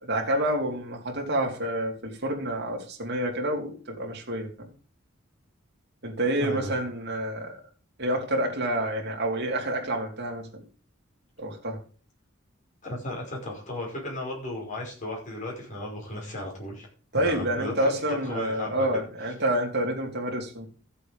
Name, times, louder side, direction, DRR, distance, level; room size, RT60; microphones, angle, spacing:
voice 1, 0.0-4.7 6.0-7.6 8.0-10.6 11.4-11.8 17.1-20.7, right 1 dB, 55° right, 0 dB, 3.1 m, -28 dB
voice 2, 6.4-6.7 12.8-16.9 17.1-17.9 18.2-18.9, left 1 dB, 40° left, -3 dB, 5.3 m, -35 dB
14.0 x 7.6 x 5.2 m, 0.40 s
head